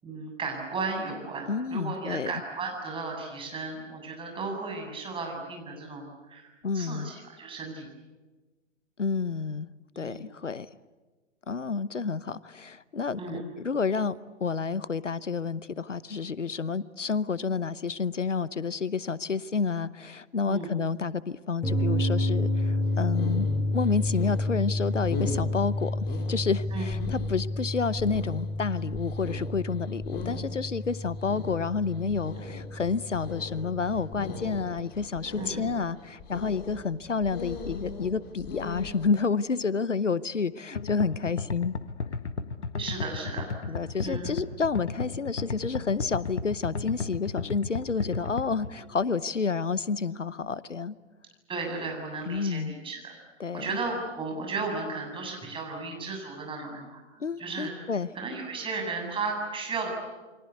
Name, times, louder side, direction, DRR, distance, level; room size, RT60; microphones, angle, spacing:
voice 1, 0.0-7.9 9.9-10.3 13.2-13.4 20.5-20.7 26.7-26.9 35.4-35.6 42.8-44.3 51.5-53.2 53.5-57.0 57.4-57.7 58.1-59.9, right 4 dB, 15° right, 1 dB, 7.5 m, -35 dB
voice 2, 1.5-2.3 6.6-7.1 9.0-9.7 10.0-10.7 11.5-23.5 23.7-41.8 43.7-51.0 52.3-52.7 53.4-53.7 57.2-58.1, left 5 dB, 90° left, 19 dB, 1.0 m, -30 dB
sound 1, 21.6-34.6, left 1 dB, 5° left, 3.3 m, -30 dB
sound 2, 22.8-39.0, left 3 dB, 25° left, 3.8 m, -40 dB
sound 3, 40.8-48.7, left 4 dB, 70° left, 1.9 m, -34 dB
29.5 x 24.0 x 8.3 m, 1.3 s
figure-of-eight pair, 120°, 36 cm